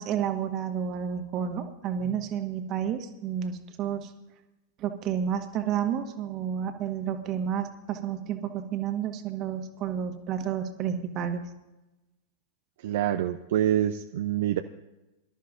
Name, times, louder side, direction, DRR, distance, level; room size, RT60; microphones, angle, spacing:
voice 1, 0.0-4.1 4.8-11.5, right 8 dB, 35° right, 6 dB, 1.6 m, -31 dB
voice 2, 12.8-14.6, right 11 dB, 55° right, 7 dB, 0.6 m, -26 dB
24.0 x 13.0 x 2.6 m, 1.0 s
figure-of-eight pair, 90°, 0 cm